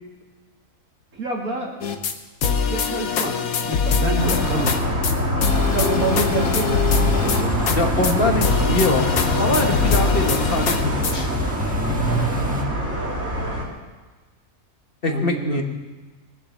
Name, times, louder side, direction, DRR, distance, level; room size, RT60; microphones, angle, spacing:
voice 1, 1.1-1.7 2.7-4.7 5.6-7.7 8.0-8.5 15.1-15.6, right 1 dB, 80° right, -2 dB, 3.2 m, -27 dB
sound 1, 1.8-2.1 2.4-4.8 5.0-5.1 5.4-7.8 8.0-8.1 8.4-11.1, left 6 dB, 75° left, 1.5 m, -23 dB
sound 2, 4.2-13.6, left 1 dB, 50° right, 3.1 m, -24 dB
sound 3, 6.9-12.6, right 1 dB, 5° right, 1.5 m, -27 dB
voice 2, 7.7-9.1 9.4-11.3 15.0-15.6, left 2 dB, 40° left, 4 dB, 1.4 m, -23 dB
20.5 x 7.5 x 7.5 m, 1.3 s
omnidirectional pair, 1.5 m